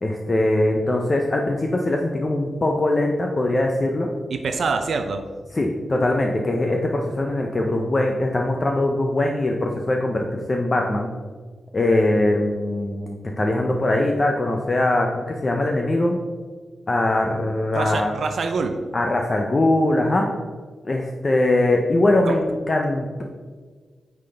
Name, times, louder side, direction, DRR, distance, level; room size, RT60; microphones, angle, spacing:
voice 1, 0.0-4.1 5.5-11.1 11.7-16.2 16.9-18.1 18.9-20.3 20.8-23.2, left 1 dB, 25° left, 1 dB, 0.5 m, -21 dB
voice 2, 4.3-5.2 17.7-18.8 22.3-22.4, right 4 dB, 60° right, 5 dB, 0.4 m, -25 dB
8.7 x 3.9 x 3.3 m, 1.5 s
wide cardioid pair, 150°, 0 cm